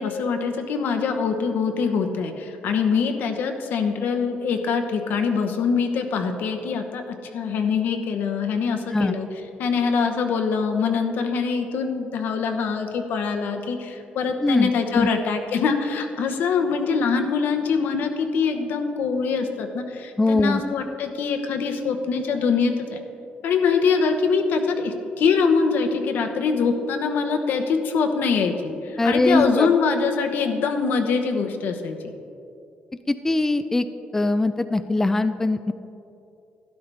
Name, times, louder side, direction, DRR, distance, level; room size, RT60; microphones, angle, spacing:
voice 1, 0.0-9.3 9.6-23.0 23.4-32.0, left 5 dB, 80° left, 6 dB, 1.0 m, -24 dB
voice 2, 14.4-15.1 20.2-20.6 29.0-29.7 33.1-33.9 34.1-35.7, left 2 dB, 10° left, 10 dB, 0.3 m, -21 dB
12.5 x 11.0 x 3.4 m, 2.6 s
cardioid pair, 125°, 3 cm